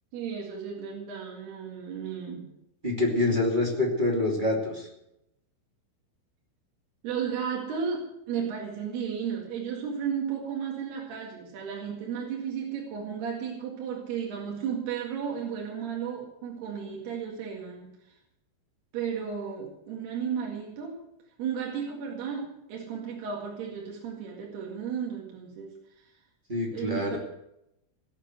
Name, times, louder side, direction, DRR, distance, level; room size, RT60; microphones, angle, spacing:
voice 1, 0.1-2.5 7.0-18.1 18.9-21.0 21.4-26.1 26.7-27.2, right 7 dB, 60° right, -1 dB, 3.8 m, -34 dB
voice 2, 2.8-4.9 26.5-27.2, left 2 dB, 20° right, 0 dB, 1.2 m, -26 dB
17.5 x 8.2 x 7.9 m, 0.83 s
omnidirectional pair, 5.6 m